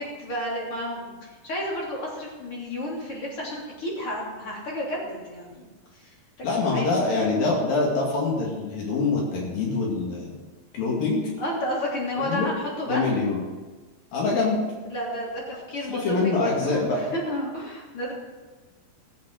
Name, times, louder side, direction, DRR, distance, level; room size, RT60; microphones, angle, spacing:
voice 1, 0.0-6.1 6.6-7.2 11.4-13.2 14.9-18.1, equal, 35° left, -4 dB, 3.8 m, -32 dB
voice 2, 6.4-10.3 10.7-11.2 12.2-12.5 12.9-13.4 14.1-14.6 15.9-17.0, left 3 dB, 70° left, -2 dB, 3.9 m, -24 dB
15.5 x 7.6 x 6.4 m, 1.3 s
omnidirectional pair, 4.4 m